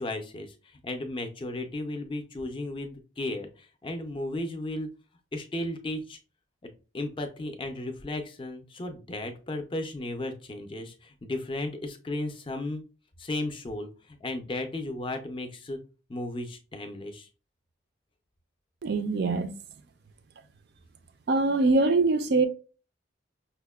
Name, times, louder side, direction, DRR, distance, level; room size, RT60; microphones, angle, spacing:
voice 1, 0.0-4.9 5.3-6.2 6.9-12.8 13.2-15.8 16.1-17.3, left 2 dB, 25° left, 0.4 m, -35 dB
voice 2, 18.8-19.5 21.3-22.5, right 3 dB, 50° right, 0.3 m, -23 dB
5.5 x 2.1 x 2.2 m
head